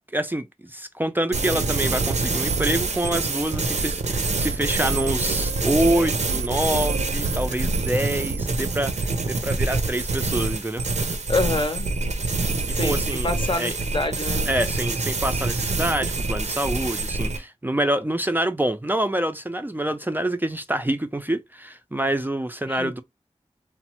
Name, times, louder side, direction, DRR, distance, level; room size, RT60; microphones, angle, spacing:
voice 1, 0.1-10.8 12.7-13.3 13.6-13.8 14.5-23.0, right 1 dB, 15° right, 0.4 m, -26 dB
sound 1, 1.3-17.4, right 3 dB, 70° right, 0.6 m, -26 dB
voice 2, 11.3-11.9 12.4-14.5 22.7-22.9, left 2 dB, 45° left, 0.6 m, -27 dB
3.0 x 2.0 x 2.8 m
wide cardioid pair, 55°, 12 cm